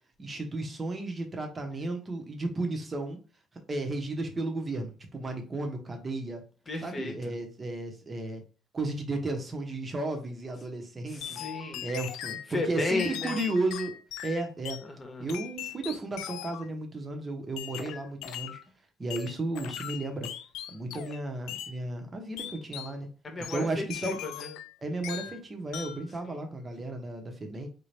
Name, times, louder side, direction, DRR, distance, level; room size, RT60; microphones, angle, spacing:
voice 1, 0.2-3.2 3.7-6.4 6.8-8.4 8.7-11.4 11.8-13.9 14.2-14.8 15.2-18.6 19.0-20.3 20.7-23.1 23.5-24.2 24.8-27.7, right 2 dB, 25° right, 4 dB, 0.9 m, -34 dB
voice 2, 6.7-7.3 11.1-11.9 12.5-13.4 14.8-15.3 23.2-24.5 26.2-26.4, left 2 dB, 30° left, 4 dB, 1.0 m, -34 dB
sound 1, 11.2-12.5 13.0-14.9 15.3-16.7 17.6-18.6 19.1-21.2 21.5-21.8 22.4-23.0 23.4-24.7 25.0-25.4 25.7-26.1, left 11 dB, 85° left, 0.4 m, -39 dB
3.9 x 2.7 x 3.3 m, 0.37 s
cardioid pair, 110°, 0 cm